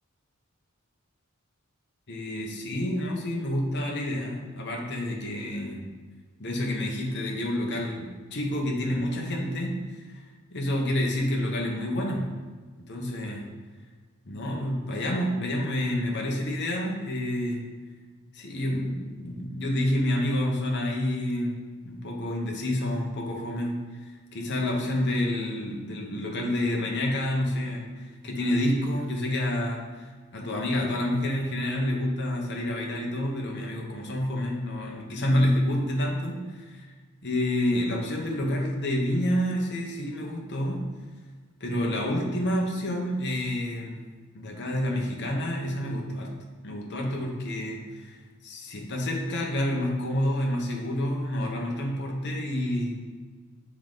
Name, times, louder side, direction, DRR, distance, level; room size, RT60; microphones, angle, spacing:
voice 1, 2.1-5.8 6.4-10.2 10.5-12.3 12.9-13.4 14.3-17.6 18.3-21.5 21.8-36.9 37.2-40.8 41.6-44.0 44.3-46.3 46.6-48.2 48.4-53.0, left 1 dB, 55° left, -1 dB, 1.0 m, -28 dB
7.0 x 3.7 x 3.8 m, 1.4 s
head